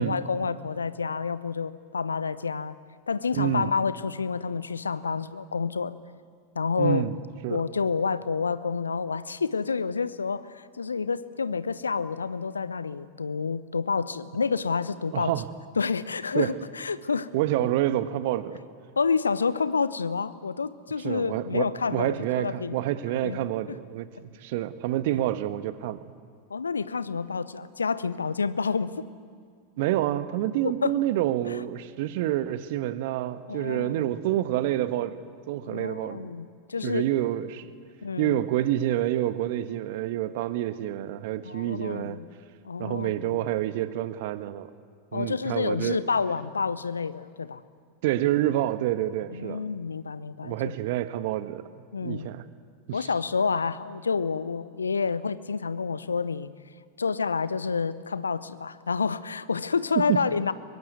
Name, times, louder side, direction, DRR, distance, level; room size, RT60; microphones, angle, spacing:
voice 1, 0.0-2.8 3.1-6.0 6.5-7.0 7.5-15.3 15.8-17.3 19.0-22.8 23.2-23.8 26.5-28.9 30.8-30.9 33.5-34.1 35.6-37.1 38.0-38.4 41.4-42.2 42.6-43.4 45.1-47.6 49.3-50.7 51.9-52.3 52.9-56.5 57.0-60.5, left 5 dB, 80° left, 17 dB, 0.9 m, -29 dB
voice 2, 3.3-3.7 6.8-7.2 7.4-7.6 15.1-15.5 16.3-16.5 17.3-18.6 21.0-24.1 24.4-26.0 29.8-36.2 36.8-37.7 38.2-42.2 42.8-44.7 45.1-46.0 48.0-49.6 50.4-52.4 52.9-53.1 59.9-60.2, right 13 dB, 55° right, 14 dB, 1.3 m, -28 dB
23.5 x 22.5 x 9.4 m, 2.2 s
figure-of-eight pair, 85°, 0 cm